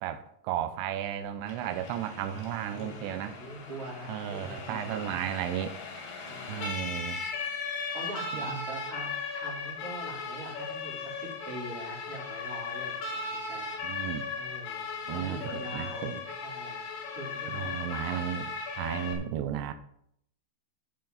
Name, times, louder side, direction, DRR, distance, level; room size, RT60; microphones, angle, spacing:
voice 1, 0.0-3.4 4.1-5.7 6.5-7.2 8.5-8.6 13.8-14.3 15.1-16.2 17.5-18.5 18.8-19.7, right 10 dB, 90° right, 10 dB, 2.9 m, -34 dB
Siren, 1.5-19.1, left 4 dB, 90° left, 4.4 m, -37 dB
voice 2, 2.7-5.2 6.2-6.7 7.9-14.0 14.3-16.1 16.4-16.8 17.1-17.7, right 2 dB, 35° right, -4 dB, 4.4 m, -43 dB
12.0 x 8.9 x 4.0 m, 0.71 s
omnidirectional pair, 4.8 m